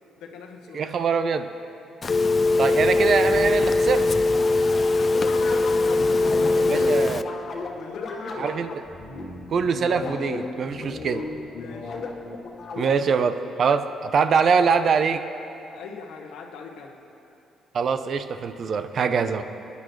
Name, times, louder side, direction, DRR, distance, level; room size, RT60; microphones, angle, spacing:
voice 1, 0.2-1.0 4.4-7.0 7.7-8.6 11.6-12.0 12.4-12.5 12.9-13.0 13.4-13.7 15.7-17.0 19.2-19.4, left 5 dB, 90° left, 1 dB, 1.1 m, -41 dB
voice 2, 0.7-1.5 2.6-4.1 6.7-7.2 8.4-8.7 9.5-11.2 12.8-15.3 17.7-19.4, right 6 dB, 55° right, 10 dB, 0.6 m, -23 dB
Telephone, 2.0-7.2, left 2 dB, 35° left, 0.4 m, -21 dB
sound 1, 5.1-13.2, left 3 dB, 60° left, 1.5 m, -35 dB
24.0 x 9.6 x 3.2 m, 2.7 s
cardioid pair, 90°, 0 cm